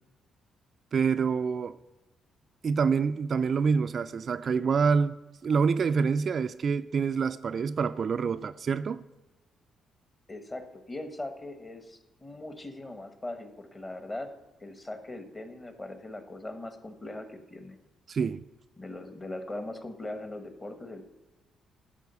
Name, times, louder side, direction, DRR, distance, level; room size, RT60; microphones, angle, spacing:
voice 1, 0.9-1.8 2.6-9.0 18.1-18.4, right 5 dB, 50° right, 0.3 m, -27 dB
voice 2, 10.3-14.3 14.6-17.8 18.8-21.0, left 2 dB, 25° left, 1.2 m, -40 dB
11.0 x 4.3 x 6.8 m
cardioid pair, 90°, 0 cm